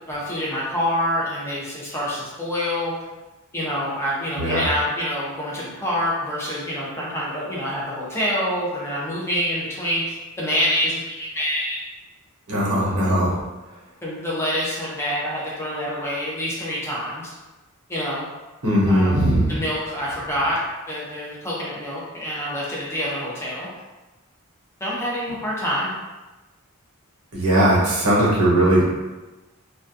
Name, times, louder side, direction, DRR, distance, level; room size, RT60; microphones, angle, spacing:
voice 1, 0.1-2.9 3.5-11.8 14.0-17.3 17.9-18.3 18.9-20.6 20.9-23.7 24.8-26.0, equal, 10° left, -6 dB, 0.6 m, -26 dB
voice 2, 12.5-13.3 18.6-19.6 27.3-28.8, right 1 dB, 80° right, -6 dB, 0.8 m, -19 dB
2.3 x 2.2 x 2.6 m, 1.1 s
head